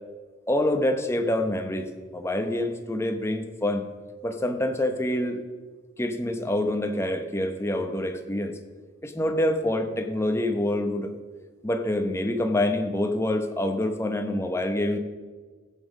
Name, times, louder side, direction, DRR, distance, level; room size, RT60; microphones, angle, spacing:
voice 1, 0.5-1.9 2.1-3.8 4.2-5.4 6.0-8.5 9.0-11.1 11.6-15.0, left 1 dB, 15° left, 6 dB, 0.8 m, -26 dB
15.0 x 7.4 x 5.2 m, 1.5 s
head